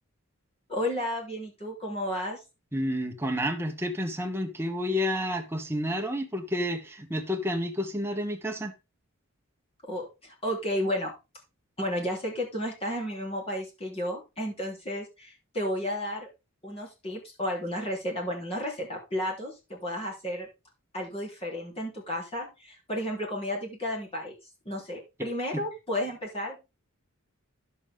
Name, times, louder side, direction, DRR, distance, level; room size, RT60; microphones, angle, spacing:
voice 1, 0.7-2.4 9.8-11.1 11.8-16.3 16.6-20.5 20.9-24.4 24.7-26.6, equal, 25° left, 3.5 m, -32 dB
voice 2, 2.7-8.7 25.5-25.6, equal, 10° right, 1.3 m, -30 dB
10.5 x 7.0 x 3.7 m
head